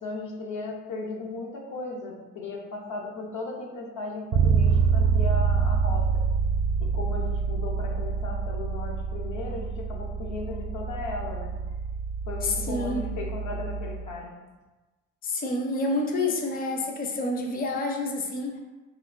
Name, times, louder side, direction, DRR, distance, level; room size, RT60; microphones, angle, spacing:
voice 1, 0.0-6.2 6.8-11.6 12.3-14.4, left 3 dB, 80° left, 0 dB, 0.7 m, -36 dB
Bass guitar, 4.3-14.2, right 5 dB, 70° right, 0.5 m, -26 dB
voice 2, 12.4-13.0 15.2-18.5, left 2 dB, 30° left, 2 dB, 0.5 m, -28 dB
3.2 x 2.2 x 3.6 m, 1.2 s
cardioid pair, 90°, 30 cm